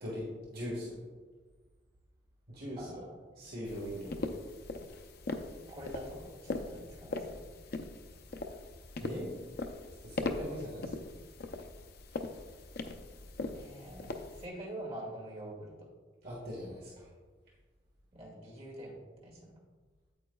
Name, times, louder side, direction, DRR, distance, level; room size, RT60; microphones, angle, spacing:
voice 1, 0.0-1.0 2.5-3.0 3.4-4.2 9.0-9.3 10.0-10.9 16.2-17.1, equal, 55° right, -5 dB, 1.5 m, -40 dB
sound 1, 3.7-14.5, left 2 dB, 55° left, 0.5 m, -41 dB
voice 2, 5.7-7.4 13.5-15.7 18.1-19.6, right 1 dB, 35° right, -4 dB, 2.2 m, -45 dB
8.7 x 8.5 x 2.3 m, 1.4 s
head